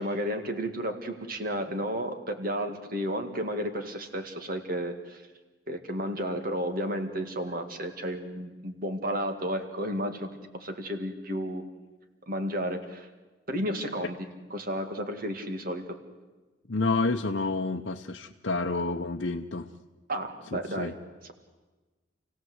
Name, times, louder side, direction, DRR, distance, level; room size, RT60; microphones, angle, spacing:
voice 1, 0.0-5.2 5.7-11.6 12.3-13.1 13.5-14.2 14.5-15.8 20.1-20.9, equal, 50° right, 6 dB, 2.1 m, -32 dB
voice 2, 16.7-19.7 20.5-20.9, left 3 dB, 60° left, 1 dB, 0.8 m, -29 dB
28.5 x 16.5 x 8.0 m, 1.2 s
head